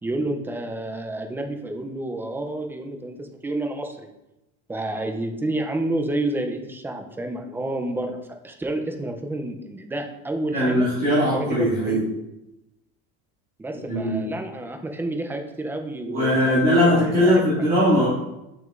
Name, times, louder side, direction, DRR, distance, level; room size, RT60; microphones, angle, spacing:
voice 1, 0.0-4.1 4.7-8.2 8.4-10.9 11.3-12.1 13.6-17.7, right 1 dB, 5° right, 4 dB, 0.4 m, -30 dB
voice 2, 10.5-12.0 13.9-14.3 16.0-18.1, equal, 25° right, -9 dB, 2.0 m, -20 dB
6.9 x 6.3 x 2.4 m, 0.92 s
cardioid pair, 145°, 38 cm